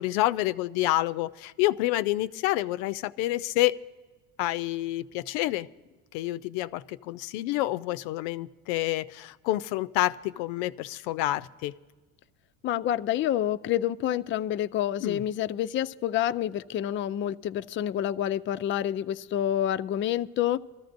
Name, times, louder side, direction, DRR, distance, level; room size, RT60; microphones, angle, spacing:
voice 1, 0.0-3.8 4.4-5.7 6.1-11.7 15.0-15.2, left 16 dB, 90° left, 14 dB, 0.5 m, -28 dB
voice 2, 12.6-20.6, left 11 dB, 35° left, 12 dB, 0.4 m, -28 dB
23.0 x 14.0 x 2.6 m, 1.3 s
supercardioid pair, 105°, 37 cm